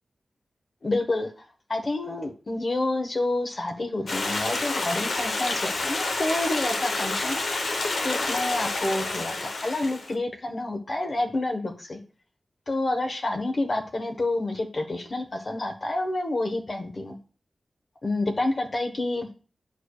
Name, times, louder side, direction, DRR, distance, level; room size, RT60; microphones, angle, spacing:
voice 1, 0.8-1.3 1.7-7.4 8.0-9.3 9.6-12.0 12.7-17.2 18.0-19.3, left 2 dB, 50° left, 5 dB, 1.3 m, -28 dB
Stream, 4.1-10.1, left 3 dB, 75° left, 1.0 m, -29 dB
11.0 x 4.9 x 2.4 m, 0.37 s
wide cardioid pair, 70°, 0 cm